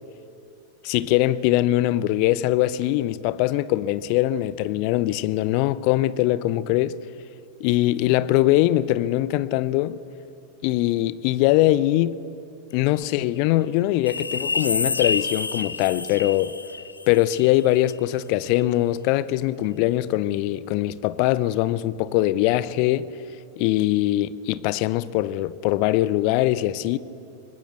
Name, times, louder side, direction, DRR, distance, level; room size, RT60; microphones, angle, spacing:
voice 1, 0.8-7.0 7.6-10.0 10.6-12.2 12.7-16.6 17.1-23.1 23.6-27.0, left 15 dB, 45° left, 0.7 m, -22 dB
sound 1, 14.1-17.5 17.9-18.0, left 4 dB, 80° left, 0.9 m, -28 dB
24.0 x 19.5 x 8.2 m
figure-of-eight pair, 90°, 0 cm